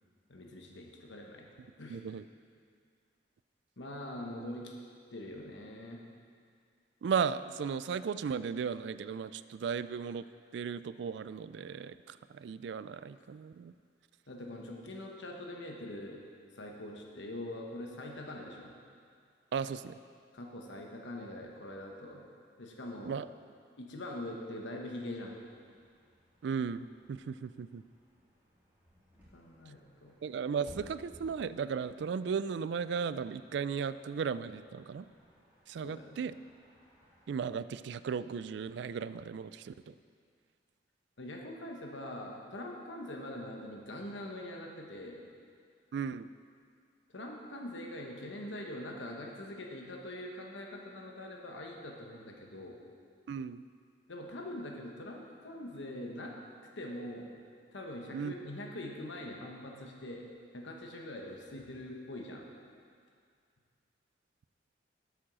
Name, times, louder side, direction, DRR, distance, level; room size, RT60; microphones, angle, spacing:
voice 1, 0.3-1.5 1.8-2.0 3.8-4.7 5.1-6.0 14.3-16.2 16.5-18.7 20.3-22.2 22.6-23.1 23.8-25.4 29.3-30.2 35.8-36.2 41.2-45.2 47.1-52.8 54.1-56.3 56.8-57.3 57.7-60.3 60.5-62.5, left 1 dB, 90° left, 0 dB, 1.1 m, -43 dB
voice 2, 1.9-2.2 7.0-10.2 10.5-13.7 19.5-20.0 23.1-23.3 26.4-27.8 30.2-35.1 35.7-36.3 37.3-39.9 45.9-46.3 53.3-53.6 58.1-58.3, right 6 dB, 70° right, 14 dB, 0.3 m, -36 dB
sound 1, 25.1-37.3, equal, 10° right, 2.6 m, -61 dB
8.6 x 7.2 x 6.2 m, 2.2 s
head